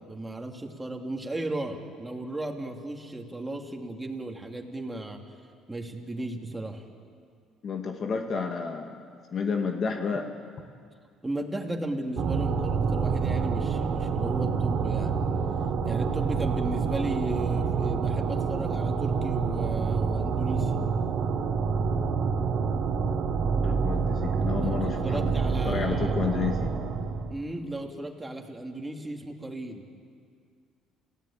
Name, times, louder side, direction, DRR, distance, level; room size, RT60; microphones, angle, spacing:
voice 1, 0.0-5.2 5.7-6.8 11.2-15.3 15.8-20.8 24.5-26.2 27.3-29.9, right 1 dB, 15° right, 2 dB, 2.9 m, -35 dB
voice 2, 7.6-9.0 9.3-10.3 23.6-25.3 25.7-26.7, left 5 dB, 45° left, 4 dB, 1.9 m, -30 dB
sound 1, 12.2-27.3, right 5 dB, 55° right, 2.7 m, -27 dB
29.0 x 16.5 x 8.9 m, 2.2 s
supercardioid pair, 90°, 0 cm